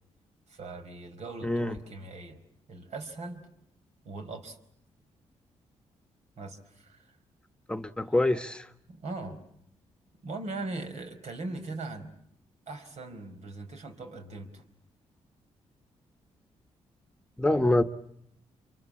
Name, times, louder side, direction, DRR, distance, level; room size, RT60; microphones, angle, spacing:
voice 1, 0.5-2.4 2.7-3.5 4.0-4.6 6.4-7.2 8.0-8.1 8.9-9.4 10.2-12.1 12.7-14.6 17.5-17.8, right 2 dB, 70° right, 6 dB, 4.7 m, -40 dB
voice 2, 1.4-1.7 7.7-8.7 17.4-17.8, left 1 dB, 10° left, 8 dB, 1.3 m, -25 dB
28.0 x 24.5 x 8.7 m, 0.74 s
cardioid pair, 70°, 12 cm